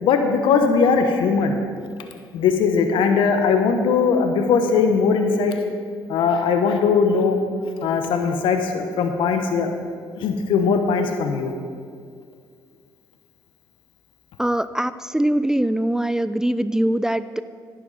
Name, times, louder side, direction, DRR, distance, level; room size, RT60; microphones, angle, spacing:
voice 1, 0.0-1.6 2.3-5.6 6.1-7.4 7.8-9.7 10.2-11.5, left 5 dB, 75° left, 5 dB, 1.1 m, -19 dB
voice 2, 14.4-17.4, right 1 dB, 5° right, 14 dB, 0.3 m, -22 dB
11.0 x 10.0 x 4.1 m, 2.1 s
supercardioid pair, 70°, 9 cm